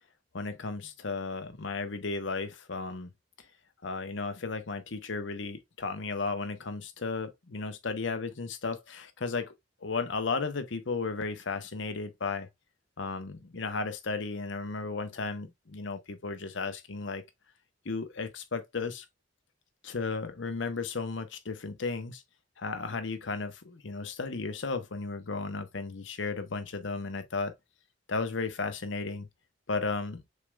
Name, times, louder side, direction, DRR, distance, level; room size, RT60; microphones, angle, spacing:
voice 1, 0.3-3.1 3.8-9.5 9.8-12.5 13.0-17.3 17.8-19.0 19.8-22.2 22.6-27.5 28.1-29.3 29.7-30.2, left 4 dB, 70° left, 0.9 m, -34 dB
6.6 x 3.3 x 2.3 m
head